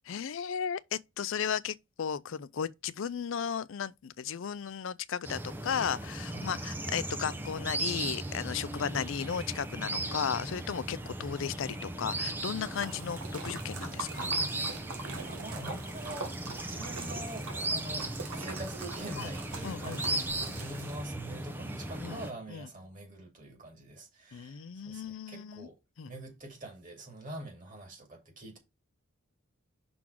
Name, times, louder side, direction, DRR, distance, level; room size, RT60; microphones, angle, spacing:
voice 1, 0.1-14.3 19.2-19.3 19.6-20.2 22.0-22.2 22.5-22.7 24.3-25.7 26.0-26.1, left 7 dB, 65° left, 0.4 m, -35 dB
sound 1, 5.2-22.3, right 1 dB, 10° right, 0.6 m, -37 dB
Splash splatter, 12.1-21.2, right 4 dB, 85° right, 1.2 m, -43 dB
voice 2, 15.2-25.8 26.1-28.6, right 1 dB, 35° right, 2.5 m, -45 dB
5.9 x 3.8 x 6.0 m
head